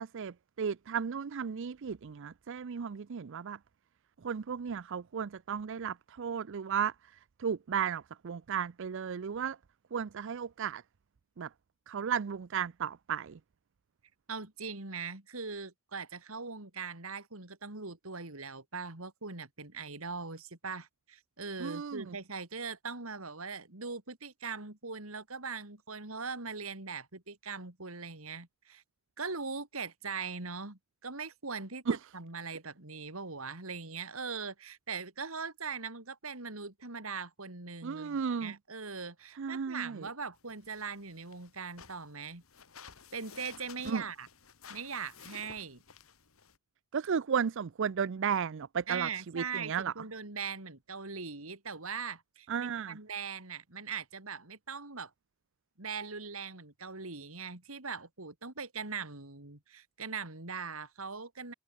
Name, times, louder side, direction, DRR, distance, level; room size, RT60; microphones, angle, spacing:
voice 1, 0.0-3.6 4.2-6.9 7.4-9.6 9.9-10.8 11.4-11.5 11.9-13.4 21.6-22.2 31.9-32.0 37.8-38.5 39.4-40.1 43.9-44.0 46.9-49.1 49.3-49.9 52.5-53.0, right 7 dB, 60° right, 0.5 m, -34 dB
voice 2, 14.3-28.8 29.2-42.4 43.1-44.3 44.7-45.8 48.9-55.1 55.8-61.5, right 5 dB, 80° right, 3.4 m, -41 dB
sound 1, 40.3-46.6, left 6 dB, 80° left, 2.7 m, -54 dB
head